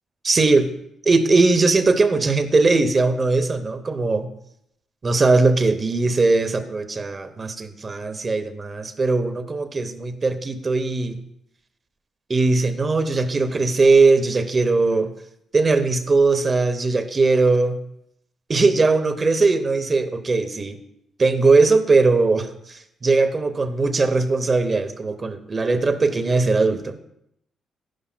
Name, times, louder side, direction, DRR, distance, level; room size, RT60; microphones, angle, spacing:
voice 1, 0.2-0.7 1.1-4.3 5.0-11.2 12.3-15.1 15.5-17.8 18.5-20.8 21.2-27.0, right 3 dB, 25° right, 9 dB, 0.7 m, -19 dB
11.5 x 11.0 x 2.2 m, 0.77 s
cardioid pair, 160°, 0 cm